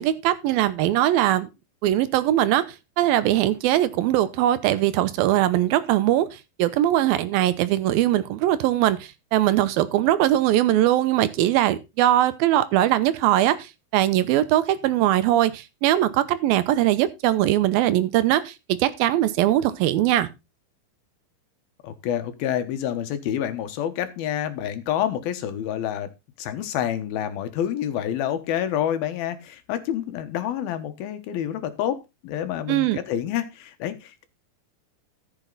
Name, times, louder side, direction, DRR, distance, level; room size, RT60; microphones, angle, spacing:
voice 1, 0.0-1.5 1.8-2.7 3.0-20.3 32.7-33.0, right 13 dB, 85° right, 2.7 m, -21 dB
voice 2, 21.8-26.1 26.4-34.3, left 10 dB, 90° left, 3.1 m, -28 dB
14.0 x 7.2 x 4.0 m
omnidirectional pair, 4.1 m